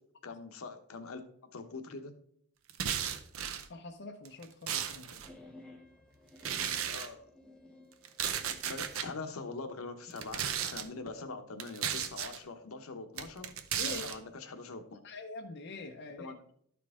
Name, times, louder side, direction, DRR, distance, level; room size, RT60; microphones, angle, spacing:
voice 1, 0.2-1.2 1.5-2.1 6.8-7.2 8.7-13.5 13.8-15.0 16.2-16.4, left 3 dB, 80° left, 7 dB, 0.9 m, -43 dB
sound 1, 2.7-3.7 4.3-5.3 6.4-7.1 8.0-9.1 10.1-10.9 11.6-12.4 13.2-14.2, right 8 dB, 75° right, 0.6 m, -35 dB
voice 2, 3.7-5.3 13.8-14.2 15.0-16.3, left 3 dB, 55° left, 3 dB, 0.6 m, -44 dB
sound 2, 5.2-9.0, left 2 dB, 5° left, 1.0 m, -55 dB
12.0 x 4.6 x 3.6 m, 0.66 s
head